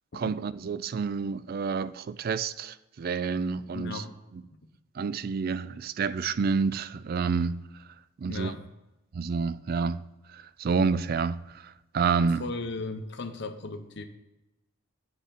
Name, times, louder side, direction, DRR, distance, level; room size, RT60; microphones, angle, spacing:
voice 1, 0.1-4.0 5.0-7.6 8.2-8.5 9.1-10.0 10.3-12.4, right 5 dB, 45° right, 0.3 m, -29 dB
voice 2, 3.7-4.2 8.3-8.6 12.4-14.0, left 3 dB, 50° left, 0.7 m, -36 dB
8.0 x 4.9 x 6.8 m
head